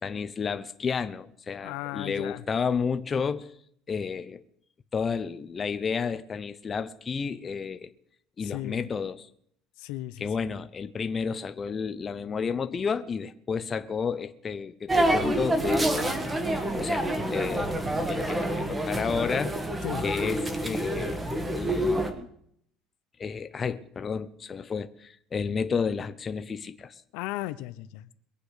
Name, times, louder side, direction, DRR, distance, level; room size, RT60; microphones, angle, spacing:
voice 1, 0.0-3.5 3.9-4.4 4.9-7.9 8.4-9.3 10.2-16.3 16.8-19.6 20.0-21.2 21.5-22.3 23.2-26.9, left 6 dB, 25° left, 0.7 m, -31 dB
voice 2, 1.6-2.4 8.4-8.9 9.8-10.5 19.8-20.0 27.1-28.1, left 16 dB, 80° left, 0.8 m, -36 dB
sound 1, 14.9-22.1, right 1 dB, 15° right, 1.5 m, -27 dB
22.5 x 8.5 x 5.0 m
cardioid pair, 155°, 0 cm